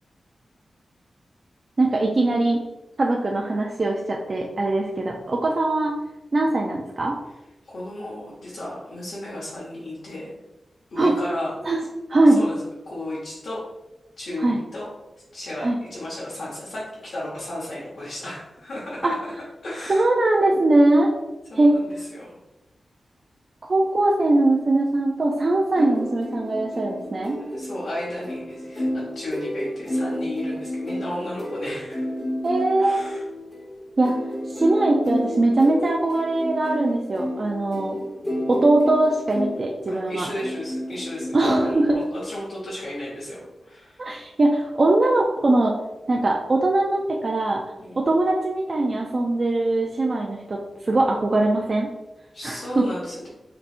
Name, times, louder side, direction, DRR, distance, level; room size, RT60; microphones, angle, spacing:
voice 1, 1.8-2.6 3.0-5.9 6.3-7.2 11.0-11.1 11.7-11.8 12.1-12.4 14.4-14.6 15.6-15.8 19.0-19.2 19.9-21.1 21.6-21.8 23.7-27.4 32.4-33.0 34.0-34.1 34.5-38.0 38.5-40.3 41.3-42.0 44.0-45.7 46.1-47.6 48.0-51.9 52.4-52.8, right 2 dB, 40° right, -1 dB, 0.4 m, -21 dB
voice 2, 7.6-10.4 10.9-11.5 12.2-12.6 12.8-13.6 14.2-14.9 15.3-19.3 19.6-20.1 21.5-22.4 27.5-32.1 32.8-33.2 38.2-38.7 39.9-41.8 42.1-44.0 47.8-48.0 52.3-53.3, left 1 dB, 75° left, -8 dB, 1.1 m, -34 dB
sound 1, 25.7-41.7, left 1 dB, 5° left, 1.1 m, -31 dB
3.9 x 3.4 x 2.5 m, 1.0 s
wide cardioid pair, 140°, 0 cm